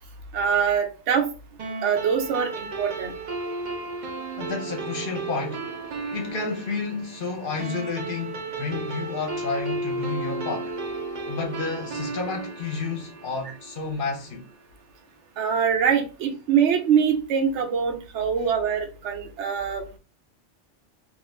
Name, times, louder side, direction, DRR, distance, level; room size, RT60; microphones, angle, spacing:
voice 1, 0.3-1.3 1.8-3.1 15.4-19.9, right 7 dB, 80° right, 0.9 m, -23 dB
sound 1, 1.6-14.3, right 3 dB, 55° right, 0.5 m, -34 dB
voice 2, 4.4-5.7 6.1-10.7 11.3-14.4 18.4-18.5, left 4 dB, 55° left, 0.8 m, -31 dB
2.4 x 2.3 x 3.1 m
omnidirectional pair, 1.2 m